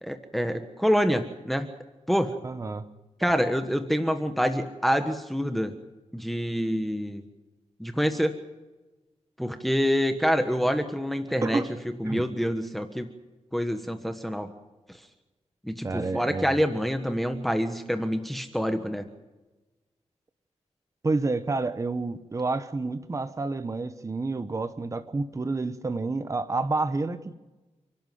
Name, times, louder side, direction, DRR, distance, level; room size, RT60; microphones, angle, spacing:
voice 1, 0.0-1.7 2.1-2.3 3.2-5.7 6.1-7.2 7.8-8.4 9.4-11.6 12.0-13.1 13.5-14.5 15.6-19.0, equal, ahead, 7 dB, 1.4 m, -26 dB
voice 2, 2.4-2.8 11.4-11.7 12.0-12.2 15.8-16.6 21.0-27.3, right 3 dB, 25° right, 10 dB, 1.1 m, -29 dB
30.0 x 11.5 x 9.3 m, 1.1 s
wide cardioid pair, 130°, 12 cm